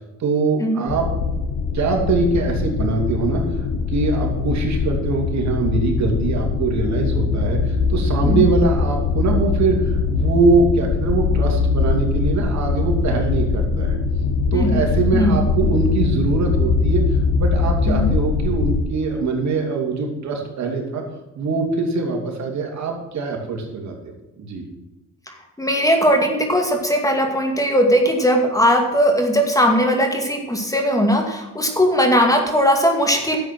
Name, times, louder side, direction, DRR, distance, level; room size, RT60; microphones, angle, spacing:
voice 1, 0.2-1.1 1.7-14.0 14.5-21.0 21.3-23.9 24.4-24.6, right 3 dB, 65° right, 1 dB, 3.0 m, -22 dB
sound 1, 0.9-18.8, left 4 dB, 85° left, 1.3 m, -21 dB
voice 2, 14.5-14.8 15.1-15.4 17.9-18.1 25.3-33.4, equal, 10° left, 3 dB, 2.3 m, -19 dB
11.0 x 7.8 x 6.2 m, 1.1 s
cardioid pair, 90°, 30 cm